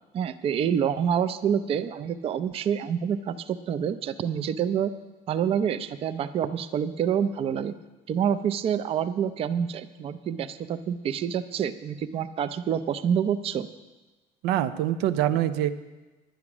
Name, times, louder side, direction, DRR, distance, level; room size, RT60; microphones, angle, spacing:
voice 1, 0.1-4.9 5.3-7.7 8.1-13.7, right 8 dB, 35° right, 11 dB, 0.5 m, -27 dB
voice 2, 14.4-15.7, right 12 dB, 90° right, 11 dB, 0.6 m, -24 dB
10.5 x 9.6 x 6.0 m, 1.1 s
cardioid pair, 150°, 16 cm